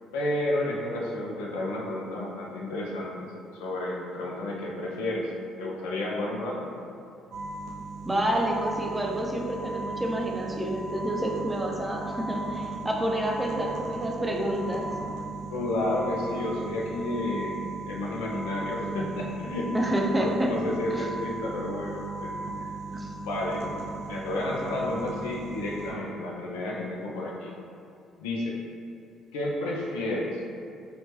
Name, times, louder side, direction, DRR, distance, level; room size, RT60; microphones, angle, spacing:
voice 1, 0.1-5.3 5.6-6.7 13.1-13.2 13.5-13.7 15.5-19.7 20.2-22.7 23.2-23.6 24.1-27.5 28.2-28.6 29.3-30.4, left 1 dB, 85° left, -3 dB, 0.4 m, -31 dB
sound 1, 7.3-25.9, right 3 dB, 75° right, 0.4 m, -37 dB
voice 2, 8.0-14.9 19.7-20.5 20.9-21.0 22.9-23.1, right 1 dB, 15° right, -1 dB, 0.5 m, -28 dB
2.8 x 2.1 x 3.0 m, 2.4 s
hypercardioid pair, 60°, 0 cm